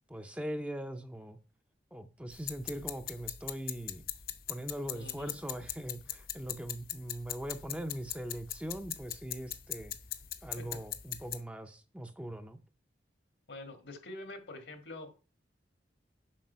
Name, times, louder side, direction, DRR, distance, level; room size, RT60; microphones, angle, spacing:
voice 1, 0.1-1.4 1.9-4.0 4.5-10.0 10.4-12.6, right 1 dB, 5° right, 0.5 m, -41 dB
sound 1, 2.3-11.4, left 11 dB, 55° left, 0.7 m, -41 dB
voice 2, 4.9-5.3 10.6-10.8 13.5-15.2, left 2 dB, 80° left, 1.6 m, -46 dB
7.4 x 5.1 x 5.5 m
head